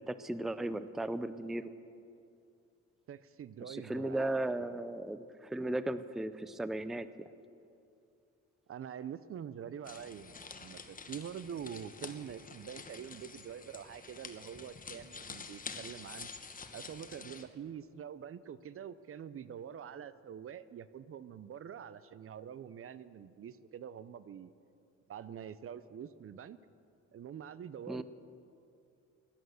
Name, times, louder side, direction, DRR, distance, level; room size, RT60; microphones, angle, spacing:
voice 1, 0.0-1.7 3.7-7.1 27.9-28.0, right 1 dB, ahead, 14 dB, 0.5 m, -36 dB
voice 2, 3.1-4.8 8.7-16.3 16.7-24.5 25.1-26.6 27.1-28.0, right 8 dB, 50° right, 15 dB, 0.6 m, -45 dB
sound 1, 9.8-17.4, left 5 dB, 25° left, 1.1 m, -48 dB
16.0 x 11.5 x 6.4 m, 2.6 s
cardioid pair, 90°, 30 cm